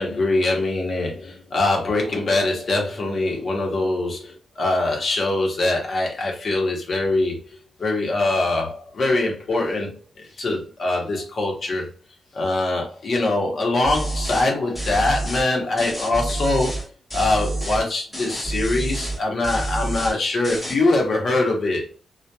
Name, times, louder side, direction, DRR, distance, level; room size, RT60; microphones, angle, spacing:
voice 1, 0.0-7.4 7.8-11.9 12.3-21.8, left 2 dB, 45° left, 0.8 m, -23 dB
sound 1, 13.8-14.5 14.7-15.5 15.8-16.8 17.1-17.8 18.1-19.2 19.4-20.2 20.4-20.7, right 2 dB, 5° left, 1.3 m, -28 dB
2.8 x 2.1 x 2.2 m
wide cardioid pair, 145°, 0 cm